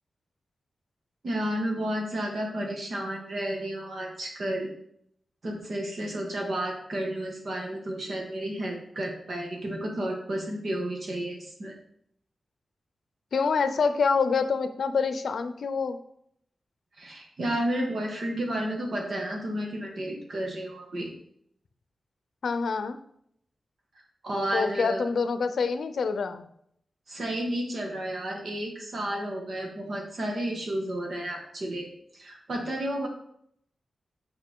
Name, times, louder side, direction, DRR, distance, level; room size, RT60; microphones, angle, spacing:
voice 1, 1.2-4.7 5.4-11.7 17.0-21.1 24.2-25.0 27.1-31.9 32.1-33.1, right 1 dB, 55° right, 1 dB, 1.8 m, -31 dB
voice 2, 13.3-16.0 22.4-23.0 24.5-26.4, left 5 dB, 75° left, 10 dB, 0.6 m, -26 dB
8.2 x 5.7 x 3.7 m, 0.70 s
wide cardioid pair, 155°, 0 cm